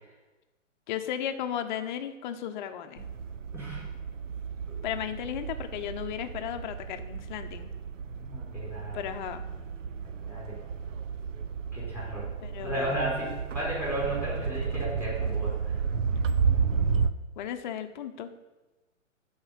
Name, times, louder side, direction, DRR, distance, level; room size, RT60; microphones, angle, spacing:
voice 1, 0.9-3.1 4.8-7.7 8.9-9.4 12.4-13.0 17.4-18.3, left 10 dB, 35° left, 8 dB, 0.9 m, -35 dB
sound 1, 3.0-17.1, right 6 dB, 65° right, 0.8 m, -32 dB
voice 2, 8.0-9.0 10.0-10.6 11.7-12.3 12.6-15.7, right 1 dB, 5° right, -7 dB, 4.4 m, -34 dB
12.5 x 4.9 x 7.4 m, 1.1 s
hypercardioid pair, 130°, 40 cm